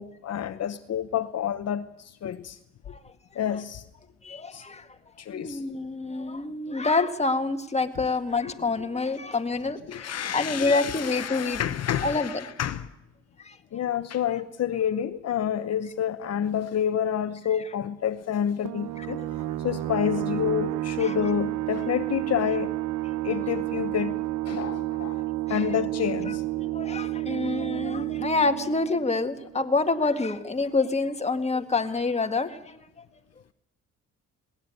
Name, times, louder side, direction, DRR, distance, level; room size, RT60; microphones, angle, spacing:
voice 1, 0.0-2.6 3.3-3.8 4.5-4.6 5.2-5.6 8.4-8.6 9.9-12.9 13.7-19.2 19.6-22.7 23.2-24.2 24.4-25.2 25.5-26.4, left 9 dB, 55° left, 0.9 m, -28 dB
voice 2, 4.2-4.9 5.3-11.6 12.0-12.4 13.4-13.6 19.0-19.3 21.0-21.1 25.5-25.8 26.3-32.8, left 3 dB, 20° left, 1.9 m, -27 dB
sound 1, 18.6-29.9, right 16 dB, 85° right, 0.9 m, -31 dB
20.0 x 18.5 x 9.5 m
cardioid pair, 90°, 30 cm